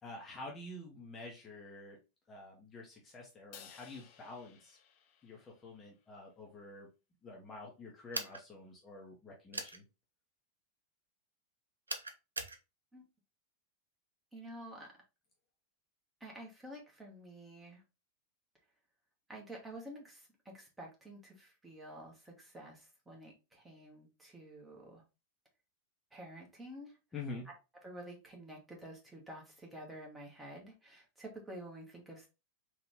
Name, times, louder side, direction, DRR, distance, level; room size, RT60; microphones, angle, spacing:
voice 1, 0.0-2.0 2.3-4.8 5.2-6.9 7.2-9.9 27.1-27.5, left 2 dB, 20° left, -1 dB, 0.9 m, -48 dB
Crash cymbal, 3.5-5.9, left 8 dB, 40° left, 0.6 m, -57 dB
sound 1, 8.1-8.4 9.5-9.8 11.9-12.6, right 2 dB, 75° right, 0.5 m, -39 dB
voice 2, 14.3-14.9 16.2-17.8 19.3-25.0 26.1-27.0 27.5-27.6 27.8-32.3, right 1 dB, 10° right, -1 dB, 1.3 m, -50 dB
3.8 x 2.6 x 3.4 m, 0.28 s
figure-of-eight pair, 90°, 0 cm